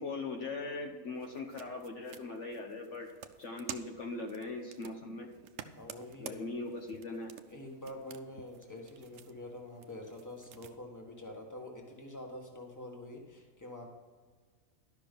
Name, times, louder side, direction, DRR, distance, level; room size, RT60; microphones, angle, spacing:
voice 1, 0.0-3.1 3.4-5.3 6.2-7.4, left 3 dB, 60° left, 2 dB, 1.2 m, -40 dB
sound 1, 1.1-10.8, right 9 dB, 70° right, 1.0 m, -51 dB
voice 2, 5.7-6.5 7.5-13.9, left 1 dB, 15° left, 0 dB, 1.5 m, -46 dB
12.0 x 6.0 x 5.2 m, 1.5 s
omnidirectional pair, 1.5 m